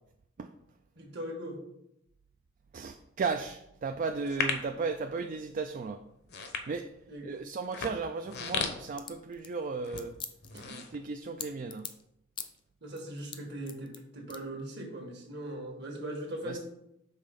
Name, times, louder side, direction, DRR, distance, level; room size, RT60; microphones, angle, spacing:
voice 1, 1.0-1.6 7.1-7.3 10.5-10.7 12.8-16.6, right 1 dB, 60° right, 2 dB, 1.5 m, -40 dB
voice 2, 2.7-6.0 6.7-6.9 7.2-10.2 10.5-11.9 16.4-16.6, right 4 dB, 40° right, 7 dB, 0.3 m, -35 dB
sound 1, 4.2-4.8 5.4-5.7 6.2-7.1 7.6-9.5 9.8-10.1 10.4-11.6 12.0-12.1, left 5 dB, 55° left, 0.8 m, -35 dB
sound 2, 8.2-12.0 12.3-12.6 13.0-14.0 14.3-14.4, left 7 dB, 25° left, 0.5 m, -43 dB
5.6 x 4.1 x 5.1 m, 0.81 s
head